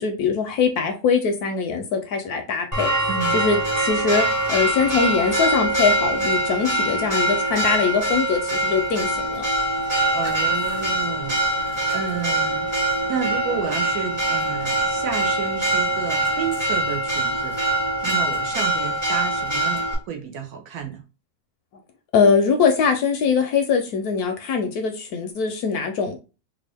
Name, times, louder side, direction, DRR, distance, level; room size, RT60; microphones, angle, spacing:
voice 1, 0.0-2.9 3.3-9.5 22.1-26.2, left 5 dB, 70° left, 0.9 m, -22 dB
Church bell, 2.7-19.9, right 1 dB, 15° right, 0.7 m, -23 dB
voice 2, 10.0-12.7 13.1-21.0, right 7 dB, 65° right, 1.0 m, -31 dB
3.6 x 2.4 x 3.3 m
omnidirectional pair, 1.9 m